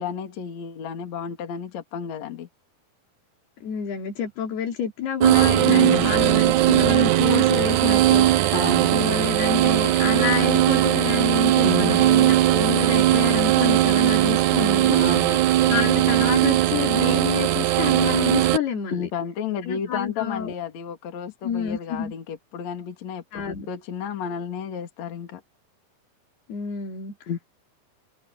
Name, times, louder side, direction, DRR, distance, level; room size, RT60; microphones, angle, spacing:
voice 1, 0.0-2.5 5.7-6.1 8.5-8.9 11.6-12.0 14.9-15.4 18.9-25.4 27.3-27.4, left 7 dB, 50° left, 3.2 m, -31 dB
voice 2, 3.6-8.3 8.9-14.9 15.7-19.1 19.7-20.5 21.4-22.1 23.3-23.7 26.5-27.2, left 7 dB, 85° left, 5.2 m, -28 dB
sound 1, 5.2-18.6, right 13 dB, 70° right, 1.9 m, -19 dB
omnidirectional pair, 4.5 m